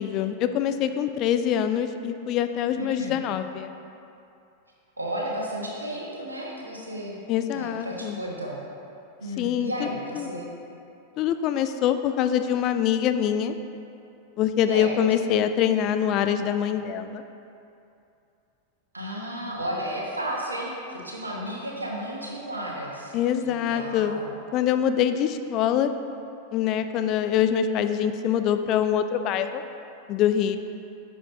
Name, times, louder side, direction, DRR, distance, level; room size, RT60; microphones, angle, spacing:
voice 1, 0.0-3.7 7.3-8.2 9.4-9.9 10.1-10.3 11.2-13.5 14.4-17.2 23.1-24.2 24.5-25.9 26.5-29.6 30.1-30.6, left 9 dB, 40° left, 9 dB, 0.3 m, -24 dB
voice 2, 2.7-3.2 5.0-7.2 7.5-8.6 9.2-10.5 14.7-15.0 18.9-24.3, right 1 dB, 80° right, -2 dB, 1.2 m, -33 dB
8.8 x 6.4 x 2.7 m, 2.7 s
figure-of-eight pair, 90°, 0 cm